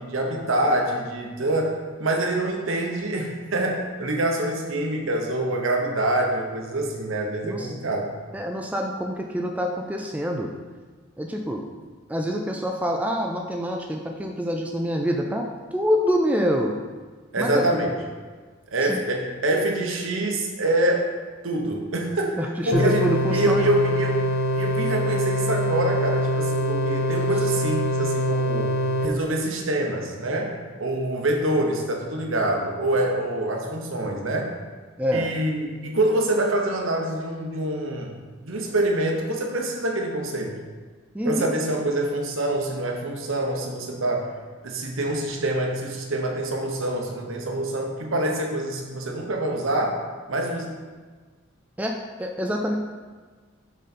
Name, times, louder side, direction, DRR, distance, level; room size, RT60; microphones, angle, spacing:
voice 1, 0.0-8.1 17.3-17.9 18.7-21.1 21.4-22.4 22.7-23.1 23.3-24.3 24.5-28.7 29.0-34.5 35.1-38.1 38.4-40.6 41.2-44.3 44.6-50.0 50.3-50.7, right 1 dB, 75° right, 1 dB, 0.9 m, -25 dB
voice 2, 8.3-10.5 11.2-11.6 12.1-15.4 15.7-16.8 17.4-17.7 18.8-19.0 22.4-23.7 35.0-35.3 41.1-41.5 51.8-51.9 52.2-52.8, equal, 5° right, 1 dB, 0.3 m, -26 dB
sound 1, 22.7-29.1, equal, 75° left, 0.6 m, -24 dB
6.3 x 4.0 x 4.2 m, 1.4 s
head